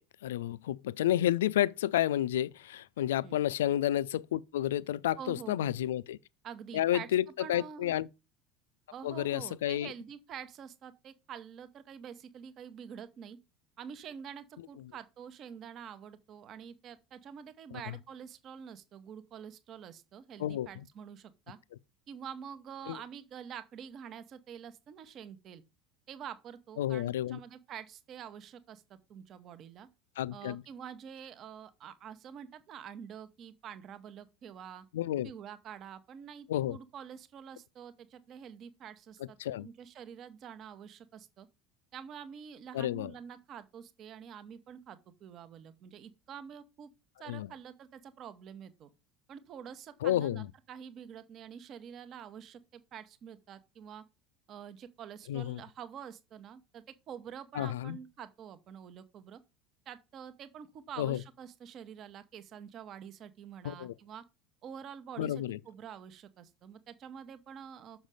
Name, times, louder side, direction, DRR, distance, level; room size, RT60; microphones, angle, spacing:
voice 1, 0.2-6.2 6.7-8.1 9.0-9.9 17.7-18.0 20.4-20.7 22.9-23.0 26.8-27.4 30.2-30.6 34.9-35.3 36.5-36.8 39.4-39.7 42.7-43.1 47.3-47.5 50.0-50.5 55.3-55.6 57.5-58.0 61.0-61.2 63.6-63.9 65.2-65.6, left 12 dB, 70° left, 0.3 m, -31 dB
voice 2, 5.2-5.7 6.4-7.1 7.4-8.0 8.9-13.4 13.8-21.6 22.1-25.6 26.1-29.9 30.3-34.9 35.2-41.5 41.9-46.9 47.2-48.9 49.3-54.0 54.5-59.4 59.9-64.2 64.6-68.1, right 8 dB, 40° right, 0.9 m, -47 dB
6.4 x 6.2 x 4.9 m
figure-of-eight pair, 70°, 0 cm